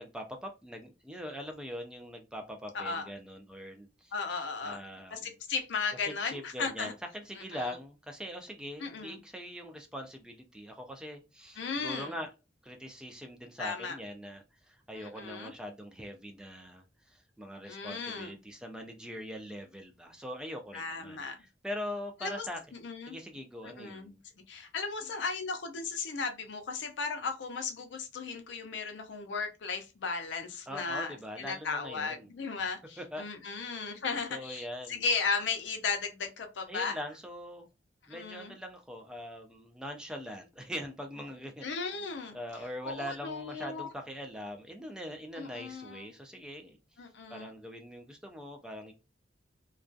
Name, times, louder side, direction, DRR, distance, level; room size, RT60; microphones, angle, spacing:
voice 1, 0.0-4.1 4.6-5.3 6.0-12.3 12.6-21.2 21.6-22.6 23.1-24.2 30.7-32.3 33.0-33.2 34.3-35.0 36.7-37.7 38.1-41.9 42.3-46.8 47.3-48.9, equal, 5° right, 0.3 m, -42 dB
voice 2, 2.7-3.1 4.1-4.8 5.1-6.9 7.5-7.7 8.8-9.2 11.6-12.1 13.6-14.0 14.9-15.5 17.7-18.4 20.7-21.4 22.2-22.5 22.8-23.2 23.8-24.2 24.5-37.0 38.1-38.5 41.6-42.4 42.8-43.9 45.3-46.1 47.0-47.5, left 4 dB, 75° left, 0.5 m, -36 dB
2.3 x 2.2 x 2.5 m
head